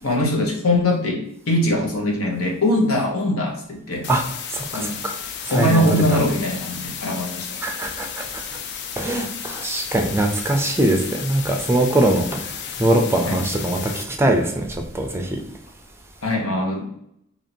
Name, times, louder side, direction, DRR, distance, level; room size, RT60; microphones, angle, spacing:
voice 1, 0.0-4.1 4.7-5.0 5.5-7.5 13.3-13.4 16.2-16.9, left 1 dB, 75° left, 0 dB, 1.0 m, -22 dB
sound 1, 4.0-14.0, left 7 dB, 55° left, 0.4 m, -33 dB
voice 2, 4.5-5.1 5.5-5.8 6.1-6.2 7.6-8.2 9.0-12.4 12.8-14.7 14.9-15.2, right 1 dB, 10° right, 3 dB, 0.4 m, -21 dB
2.9 x 2.7 x 4.2 m, 0.72 s
head